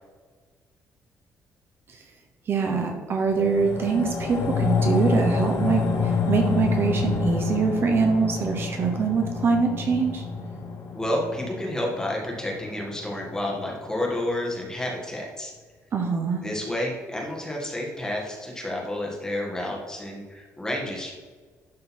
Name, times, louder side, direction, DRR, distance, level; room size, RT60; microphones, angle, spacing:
voice 1, 2.5-10.2 15.9-16.4, right 5 dB, 40° right, 3 dB, 0.8 m, -24 dB
sound 1, 3.3-13.9 14.2-14.3, left 4 dB, 80° left, 2.0 m, -28 dB
voice 2, 10.9-15.5 16.4-21.1, left 1 dB, 10° left, -1 dB, 1.5 m, -30 dB
11.5 x 3.9 x 4.2 m, 1.4 s
cardioid pair, 160°, 6 cm